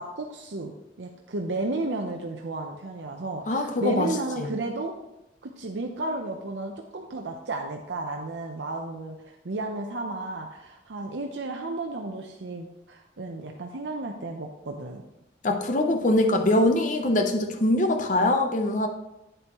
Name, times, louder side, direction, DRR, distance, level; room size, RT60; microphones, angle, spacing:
voice 1, 0.0-5.0 5.4-15.0, right 2 dB, 90° right, 2 dB, 0.7 m, -33 dB
voice 2, 3.5-4.1 4.4-4.5 15.4-18.9, left 1 dB, 45° left, 4 dB, 0.7 m, -23 dB
9.1 x 7.9 x 3.0 m, 0.91 s
head